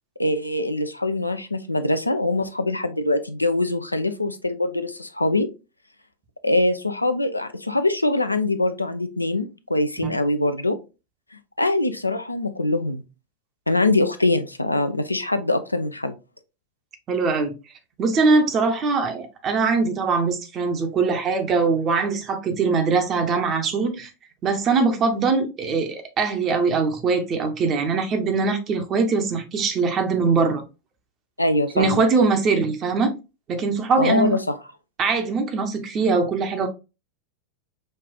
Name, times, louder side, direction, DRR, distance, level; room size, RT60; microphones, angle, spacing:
voice 1, 0.2-5.5 6.4-10.8 11.6-13.0 13.7-16.1 31.4-32.0 34.0-34.6, left 2 dB, 85° left, 0.4 m, -23 dB
voice 2, 17.1-17.5 18.0-24.1 24.4-30.6 31.7-33.1 33.5-34.4 35.0-36.7, right 4 dB, 30° right, 0.7 m, -22 dB
5.3 x 2.4 x 2.3 m
figure-of-eight pair, 90°, 0 cm